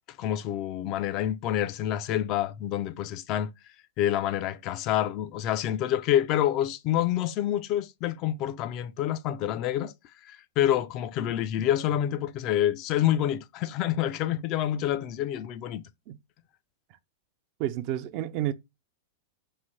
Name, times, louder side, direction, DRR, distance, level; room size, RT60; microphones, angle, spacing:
voice 1, 0.2-3.5 4.0-9.9 10.2-15.8, left 11 dB, 40° left, 0.3 m, -27 dB
voice 2, 17.6-18.5, right 13 dB, 45° right, 0.4 m, -30 dB
3.2 x 2.7 x 2.5 m
figure-of-eight pair, 95°, 0 cm